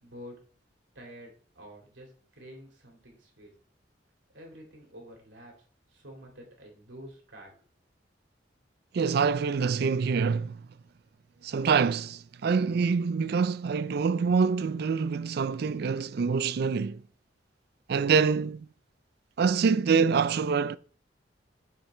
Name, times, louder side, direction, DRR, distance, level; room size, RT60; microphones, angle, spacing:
voice 1, 0.0-0.3 0.9-3.5 4.3-5.5 5.9-7.6, equal, 90° right, 2.9 m, -48 dB
voice 2, 8.9-10.7 11.4-17.0 17.9-18.7 19.4-20.8, right 5 dB, 60° right, 0.4 m, -25 dB
6.7 x 5.8 x 4.3 m
head